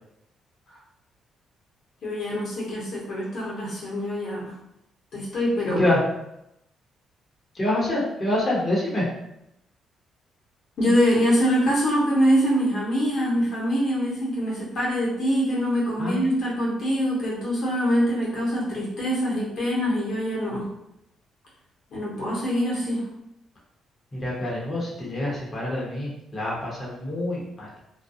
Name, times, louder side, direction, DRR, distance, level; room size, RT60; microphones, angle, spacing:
voice 1, 2.0-4.5 5.1-5.8 10.8-20.7 21.9-23.0, equal, 65° left, -5 dB, 1.0 m, -24 dB
voice 2, 7.5-9.1 16.0-16.2 24.2-27.7, left 1 dB, 30° left, -6 dB, 0.9 m, -26 dB
2.3 x 2.2 x 2.7 m, 0.83 s
cardioid pair, 90°, 0 cm